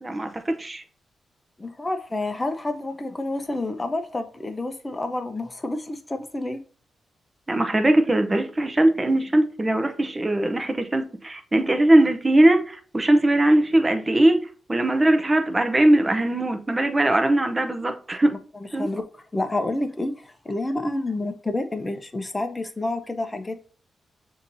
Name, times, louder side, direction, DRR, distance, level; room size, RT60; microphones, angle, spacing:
voice 1, 0.0-0.8 7.5-18.3 18.7-18.9, right 1 dB, 20° right, 0.6 m, -20 dB
voice 2, 1.6-6.6 18.5-23.6, left 2 dB, 20° left, 0.6 m, -29 dB
6.9 x 2.7 x 2.6 m
cardioid pair, 95°, 0 cm